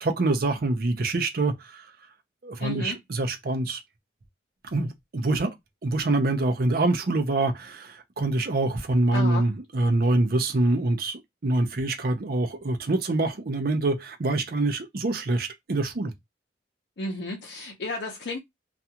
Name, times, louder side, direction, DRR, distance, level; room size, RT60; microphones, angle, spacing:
voice 1, 0.0-1.9 2.4-3.8 4.7-5.5 5.8-16.1, right 2 dB, 55° right, 0.6 m, -25 dB
voice 2, 2.6-3.0 9.1-9.5 17.0-18.4, left 2 dB, 65° left, 0.6 m, -32 dB
2.4 x 2.3 x 2.8 m
head